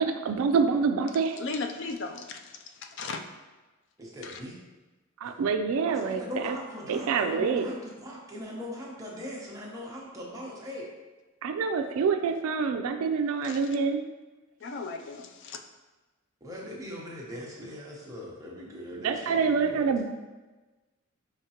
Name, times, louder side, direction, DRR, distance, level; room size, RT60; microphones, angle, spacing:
voice 1, 0.0-1.4 5.2-6.6 6.9-7.7 11.4-14.1 18.9-20.1, right 5 dB, 80° right, 7 dB, 0.3 m, -26 dB
voice 2, 1.4-2.4 3.0-3.2 4.2-4.4 13.4-13.6 14.6-15.6, left 4 dB, 55° left, 5 dB, 0.4 m, -36 dB
voice 3, 4.0-4.6 5.9-10.9 16.4-19.9, equal, 15° right, -4 dB, 0.8 m, -40 dB
5.1 x 3.2 x 2.8 m, 1.2 s
head